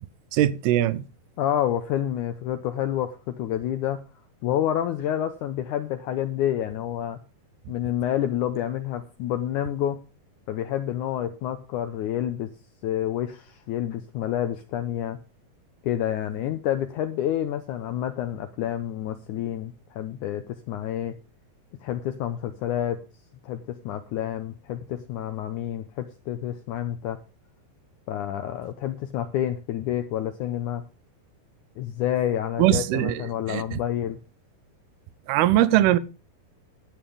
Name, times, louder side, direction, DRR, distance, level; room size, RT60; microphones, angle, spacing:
voice 1, 0.3-1.0 32.6-33.8 35.3-36.0, right 13 dB, 90° right, 2.7 m, -21 dB
voice 2, 1.4-4.0 4.4-7.2 7.7-10.0 10.5-12.5 12.8-15.2 15.8-21.1 21.8-23.0 23.4-27.2 28.1-30.9 31.8-34.2, left 11 dB, 80° left, 1.8 m, -28 dB
11.0 x 8.9 x 5.1 m
omnidirectional pair, 4.4 m